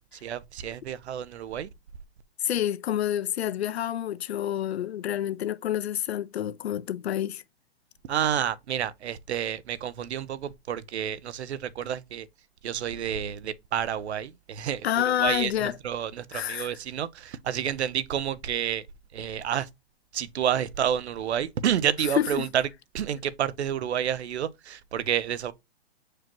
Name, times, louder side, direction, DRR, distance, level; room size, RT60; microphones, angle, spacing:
voice 1, 0.2-1.7 8.0-12.3 12.6-18.8 19.1-19.7 20.1-22.7 22.9-25.5, right 9 dB, 75° right, 0.9 m, -29 dB
voice 2, 2.4-7.4 14.8-15.7 16.3-16.8 22.2-22.5, left 11 dB, 70° left, 0.8 m, -28 dB
7.6 x 4.9 x 3.0 m
hypercardioid pair, 165°, 33 cm